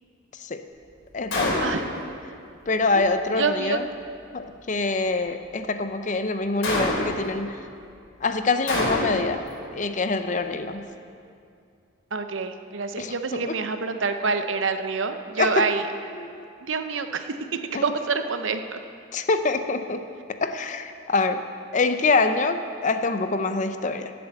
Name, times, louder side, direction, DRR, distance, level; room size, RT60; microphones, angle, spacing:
voice 1, 1.1-1.6 2.7-3.8 4.3-7.6 8.2-9.4 9.7-10.9 13.0-13.6 15.4-15.7 16.1-16.4 17.7-17.9 19.1-21.5 21.7-24.1, left 3 dB, 40° left, 8 dB, 0.6 m, -25 dB
Gunshot gunfire, 1.3-2.0 6.6-7.3 8.7-9.4, left 2 dB, 90° left, 3.0 m, -25 dB
voice 2, 3.4-3.8 12.1-15.9 16.7-17.4 17.8-18.8, right 4 dB, 75° right, 8 dB, 0.7 m, -26 dB
11.5 x 7.8 x 7.8 m, 2.4 s
head